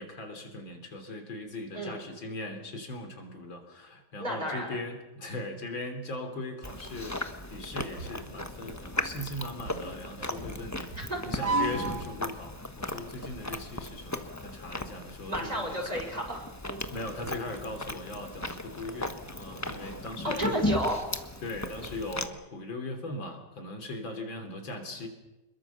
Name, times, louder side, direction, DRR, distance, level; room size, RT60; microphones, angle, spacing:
voice 1, 0.0-7.2 7.5-15.8 16.9-20.6 21.4-25.1, left 2 dB, 85° left, 5 dB, 4.1 m, -39 dB
voice 2, 4.2-4.8 11.0-11.2 15.3-16.8 20.2-21.0, equal, 20° right, 0 dB, 6.2 m, -32 dB
Chewing mastication, 6.6-22.3, left 2 dB, 10° left, 1.0 m, -37 dB
sound 1, 7.4-8.2 8.5-8.7 9.2-12.3 12.9-13.2, right 3 dB, 55° right, 2.4 m, -34 dB
26.5 x 22.0 x 7.1 m, 1.0 s
omnidirectional pair, 2.1 m